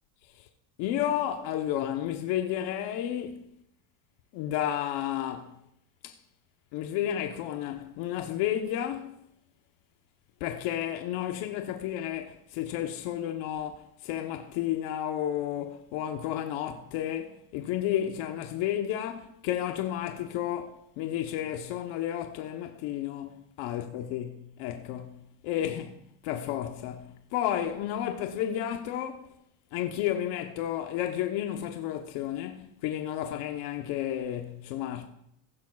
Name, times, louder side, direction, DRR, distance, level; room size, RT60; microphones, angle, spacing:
voice 1, 0.8-3.5 4.3-5.6 6.0-6.2 6.7-9.2 10.4-25.2 25.4-25.9 26.2-29.4 29.7-35.1, left 11 dB, 70° left, 1.0 m, -32 dB
16.0 x 12.5 x 2.4 m
cardioid pair, 140°, 50 cm